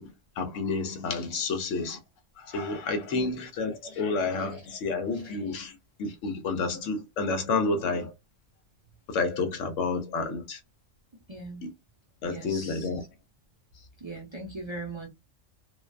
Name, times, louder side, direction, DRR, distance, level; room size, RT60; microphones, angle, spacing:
voice 1, 0.0-2.0 2.4-8.1 9.1-10.6 11.6-11.7 12.2-13.0, left 3 dB, 75° left, 1.0 m, -30 dB
voice 2, 11.3-11.7 12.2-13.0 14.0-15.1, right 2 dB, 30° right, 0.5 m, -40 dB
2.5 x 2.2 x 2.3 m
omnidirectional pair, 1.3 m